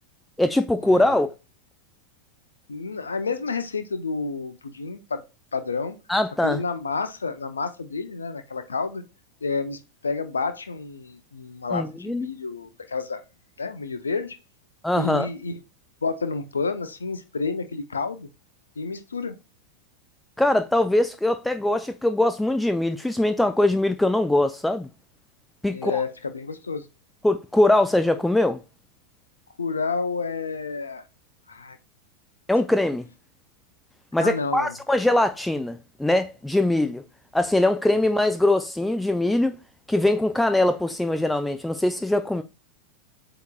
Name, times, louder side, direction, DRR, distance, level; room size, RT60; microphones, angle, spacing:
voice 1, 0.4-1.3 6.1-6.6 11.7-12.3 14.8-15.3 20.4-24.9 25.6-26.0 27.2-28.6 32.5-33.1 34.1-37.0 37.3-39.5 39.9-42.4, left 1 dB, 5° left, 0.4 m, -22 dB
voice 2, 2.7-5.2 5.5-6.0 6.4-9.0 9.4-13.2 13.6-14.4 15.0-15.6 16.0-18.3 18.8-19.4 25.7-26.9 29.6-31.0 31.5-31.8 34.2-34.7, left 4 dB, 75° left, 0.5 m, -30 dB
8.0 x 2.9 x 2.3 m
figure-of-eight pair, 90°, 0 cm